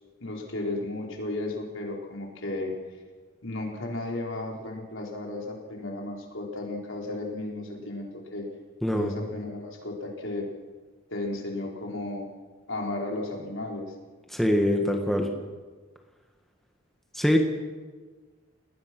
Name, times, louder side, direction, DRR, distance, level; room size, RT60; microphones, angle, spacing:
voice 1, 0.2-2.7 3.4-8.5 8.9-10.5 11.1-12.3 12.7-13.9, left 2 dB, 65° left, 0 dB, 4.4 m, -34 dB
voice 2, 8.8-9.1 14.3-15.3 17.1-17.4, equal, ahead, 2 dB, 1.6 m, -23 dB
29.5 x 19.5 x 6.1 m, 1.4 s
head